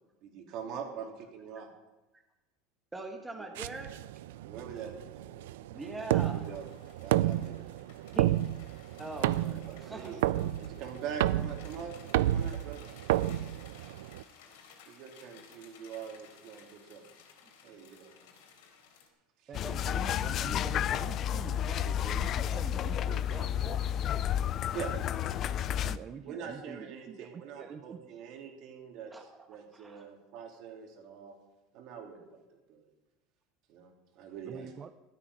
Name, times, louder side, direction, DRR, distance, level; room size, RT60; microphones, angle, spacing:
voice 1, 0.2-1.7 3.4-3.5 4.4-5.5 6.1-6.6 7.0-7.6 8.9-9.0 9.4-11.9 12.2-12.9 14.9-17.0 17.6-18.1 19.4-19.5 24.7-25.2 25.6-25.7 26.2-29.1 29.5-31.3 31.7-32.8 33.7-34.7, right 7 dB, 50° right, 1 dB, 3.2 m, -43 dB
voice 2, 2.9-4.0 5.7-6.4 8.1-8.3 9.0-9.4 9.7-10.1 29.1-30.0, right 2 dB, 10° right, 2 dB, 1.4 m, -42 dB
sound 1, 3.6-14.2, right 14 dB, 90° right, 0.5 m, -31 dB
sound 2, 6.0-19.1, left 6 dB, 90° left, 3.6 m, -57 dB
sound 3, 19.5-26.0, left 10 dB, 35° left, 0.4 m, -31 dB
voice 3, 19.5-23.8 25.7-28.2 34.5-34.9, right 7 dB, 25° right, 10 dB, 0.6 m, -46 dB
14.5 x 13.0 x 5.1 m, 1.0 s
supercardioid pair, 160°, 0 cm